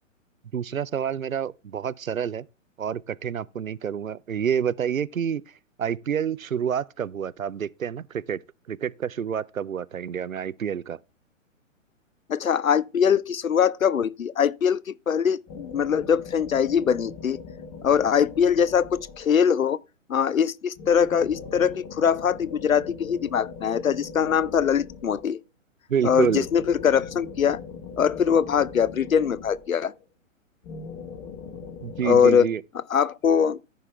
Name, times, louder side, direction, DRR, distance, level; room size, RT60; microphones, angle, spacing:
voice 1, 0.5-2.5 2.8-5.4 5.8-8.4 8.7-11.0 25.9-26.5 31.8-32.6, right 8 dB, 85° right, 0.5 m, -28 dB
voice 2, 12.3-17.4 17.8-19.8 20.1-25.4 26.0-27.6 28.0-29.9 32.0-32.5 32.9-33.6, left 7 dB, 80° left, 0.6 m, -22 dB
sound 1, 15.5-19.7 20.8-25.4 26.0-30.0 30.6-32.3, left 5 dB, 25° left, 1.3 m, -41 dB
14.0 x 5.5 x 3.4 m
figure-of-eight pair, 120°, 40 cm